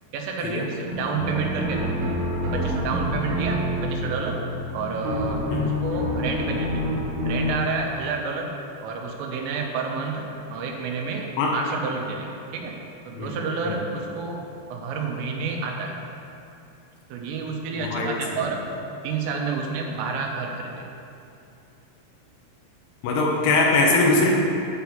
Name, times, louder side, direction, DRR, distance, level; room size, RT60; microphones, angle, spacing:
voice 1, 0.1-2.0 2.5-4.4 4.7-6.8 7.3-8.5 8.8-12.8 13.1-14.4 14.7-16.0 17.1-18.6 19.0-20.9, right 4 dB, 85° right, 1 dB, 3.5 m, -29 dB
sound 1, 0.9-7.5, left 1 dB, 60° right, 2.9 m, -27 dB
voice 2, 17.8-18.1 23.0-24.3, left 3 dB, 75° left, -1 dB, 3.4 m, -21 dB
11.0 x 4.6 x 7.1 m, 2.7 s
omnidirectional pair, 5.8 m